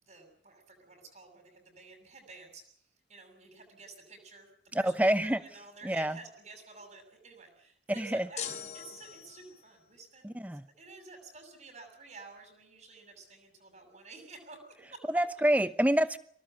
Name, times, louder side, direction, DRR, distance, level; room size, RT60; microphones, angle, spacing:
voice 1, 0.0-10.5 10.8-14.6 14.9-15.1 15.6-15.7, right 3 dB, 40° right, 4 dB, 7.0 m, -51 dB
voice 2, 4.7-5.4 5.8-6.2 8.0-8.2 10.2-10.6 15.1-16.2, right 1 dB, 10° right, 13 dB, 0.9 m, -27 dB
sound 1, 8.4-9.7, left 8 dB, 40° left, 3.3 m, -41 dB
24.5 x 18.5 x 9.1 m, 0.63 s
head